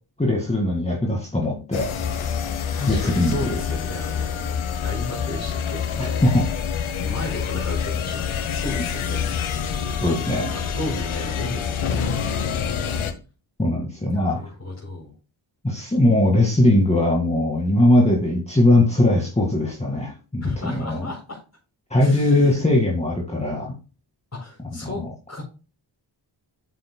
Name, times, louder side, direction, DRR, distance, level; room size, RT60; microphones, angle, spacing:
voice 1, 0.2-1.9 2.9-3.6 6.0-6.4 10.0-10.5 13.6-14.4 15.6-21.1 21.9-23.7 24.8-25.1, left 1 dB, 15° left, -1 dB, 2.1 m, -20 dB
sound 1, 1.7-13.1, left 7 dB, 90° left, 1.1 m, -27 dB
voice 2, 2.7-4.6 4.8-6.3 7.0-9.3 9.9-10.2 10.5-12.1 14.1-15.1 20.4-21.4 22.0-22.6 24.3-25.0 25.3-25.4, left 2 dB, 35° left, -5 dB, 4.5 m, -33 dB
9.0 x 7.7 x 2.3 m, 0.33 s
cardioid pair, 70°, 47 cm